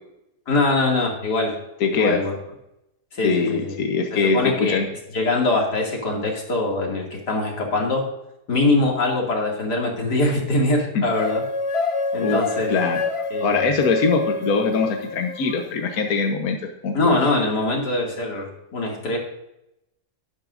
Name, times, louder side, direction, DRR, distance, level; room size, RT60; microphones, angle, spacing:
voice 1, 0.5-1.6 1.9-2.3 3.1-3.8 4.1-4.9 5.1-8.0 8.5-11.4 12.1-12.7 13.3-13.8 16.9-19.2, left 2 dB, 90° left, -1 dB, 2.9 m, -23 dB
voice 2, 1.8-2.2 3.2-4.9 12.2-12.4 12.7-13.0 13.4-17.2, left 4 dB, 65° left, 3 dB, 1.5 m, -22 dB
sound 1, 11.1-15.6, left 3 dB, 40° left, 0.4 m, -27 dB
12.0 x 10.5 x 2.6 m, 0.86 s
omnidirectional pair, 1.7 m